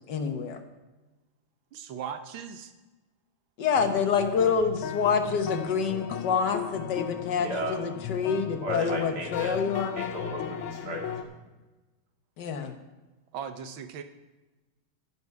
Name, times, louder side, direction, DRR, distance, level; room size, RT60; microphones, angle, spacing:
voice 1, 0.1-0.6 3.6-10.1 12.4-12.7, left 6 dB, 60° left, 6 dB, 1.6 m, -27 dB
voice 2, 1.7-2.7 13.3-14.0, right 7 dB, 75° right, 8 dB, 1.6 m, -38 dB
sound 1, 3.7-11.2, left 8 dB, 85° left, 1.5 m, -36 dB
voice 3, 7.3-7.8 8.6-9.5 10.0-11.3, equal, 50° right, -1 dB, 2.7 m, -34 dB
11.0 x 10.5 x 4.7 m, 1.1 s
omnidirectional pair, 2.3 m